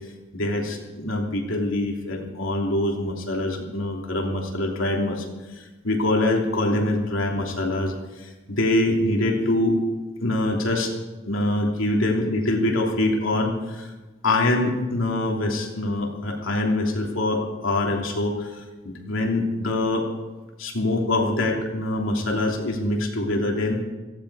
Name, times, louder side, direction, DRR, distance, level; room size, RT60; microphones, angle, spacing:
voice 1, 0.3-5.2 5.5-7.9 8.2-9.8 10.2-10.9 11.3-13.9 14.2-18.5 18.8-20.0 20.6-23.8, left 1 dB, 80° left, 0 dB, 3.1 m, -24 dB
17.5 x 16.0 x 4.9 m, 1.2 s
head